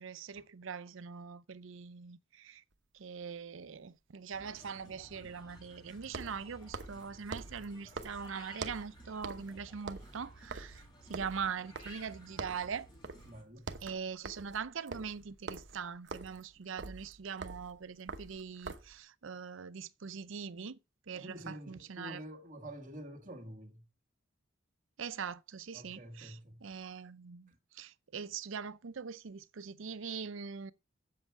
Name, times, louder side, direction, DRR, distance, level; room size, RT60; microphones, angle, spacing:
voice 1, 0.0-2.6 2.9-10.8 11.1-12.9 13.8-20.8 21.1-22.2 25.0-30.7, right 6 dB, 75° right, 0.6 m, -42 dB
sound 1, 2.7-2.8 6.0-8.9 9.2-9.6 9.8-12.1 12.4-12.7 13.0-13.3 13.6-19.0, right 3 dB, 60° right, 0.9 m, -45 dB
sound 2, 4.3-13.4, right 1 dB, 20° left, 2.8 m, -56 dB
voice 2, 13.3-13.7 21.1-23.8 25.7-26.6 27.5-27.6, equal, 40° right, 1.9 m, -48 dB
8.2 x 7.8 x 4.5 m
head